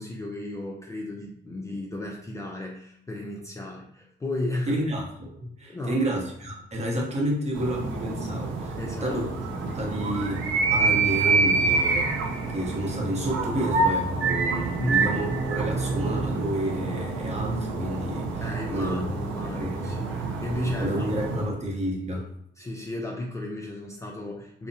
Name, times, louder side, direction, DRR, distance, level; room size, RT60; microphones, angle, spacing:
voice 1, 0.0-4.8 5.7-6.2 8.8-9.2 9.5-9.6 14.8-15.1 18.4-21.1 21.3-21.6 22.6-24.7, left 1 dB, 15° left, -2 dB, 0.3 m, -34 dB
voice 2, 4.7-9.2 9.6-10.4 10.7-12.1 12.5-18.4 18.7-19.0 19.5-19.8 20.8-22.3, right 1 dB, 35° right, -1 dB, 0.8 m, -30 dB
sound 1, 7.5-21.5, right 3 dB, 75° right, 0.4 m, -27 dB
2.5 x 2.0 x 2.6 m, 0.71 s
cardioid pair, 90°, 20 cm